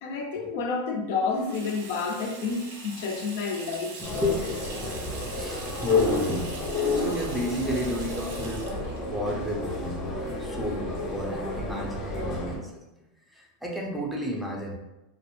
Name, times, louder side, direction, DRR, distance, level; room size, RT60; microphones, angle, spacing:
voice 1, 0.0-4.3, left 4 dB, 65° left, 3 dB, 0.5 m, -30 dB
Water tap faucet / Sink (filling or washing), 1.3-10.6, right 3 dB, 75° right, 0.6 m, -43 dB
sound 1, 4.0-12.6, left 3 dB, 35° left, 0.7 m, -30 dB
voice 2, 4.0-4.4 5.4-8.7 9.0-12.8 13.3-14.7, equal, ahead, -2 dB, 0.5 m, -32 dB
2.3 x 2.0 x 3.1 m, 0.96 s
supercardioid pair, 120°, 0 cm